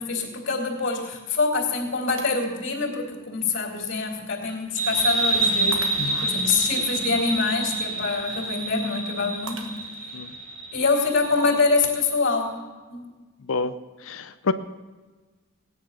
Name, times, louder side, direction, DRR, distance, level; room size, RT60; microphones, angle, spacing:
voice 1, 0.0-5.9 6.2-9.7 10.0-10.1 10.7-12.6 12.9-13.0, left 4 dB, 60° left, -4 dB, 3.0 m, -25 dB
Shatter, 2.1-2.8 3.4-3.5 5.7-6.4 9.5-10.2, right 5 dB, 75° right, 1.4 m, -40 dB
sound 1, 4.8-12.0, right 2 dB, 55° right, 5.0 m, -27 dB
voice 2, 14.0-14.5, left 4 dB, 85° left, 11 dB, 0.6 m, -28 dB
17.5 x 9.7 x 5.7 m, 1.3 s
head